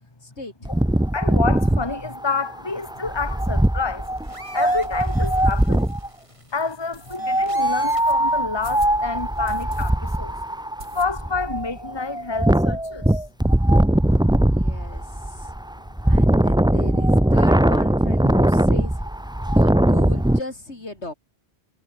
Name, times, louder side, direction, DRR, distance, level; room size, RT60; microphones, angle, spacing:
voice 1, 0.2-0.7 14.5-15.5 16.0-19.0 19.5-21.1, left 2 dB, 75° left, 5.0 m, -37 dB
Wind, 0.7-6.1 7.1-20.4, right 1 dB, 5° right, 0.6 m, -20 dB
voice 2, 1.1-4.1 4.5-5.9 6.5-10.3 10.9-13.2, left 4 dB, 20° left, 1.8 m, -28 dB
sound 1, 3.9-8.2 9.2-9.4, right 1 dB, 25° right, 4.4 m, -44 dB
sound 2, 6.9-7.2 7.9-8.1 8.6-9.0 9.4-9.9 10.2-10.3 10.8-11.4 11.8-11.9 12.1-12.2 12.5-13.1, right 2 dB, 65° right, 5.8 m, -44 dB
omnidirectional pair, 1.2 m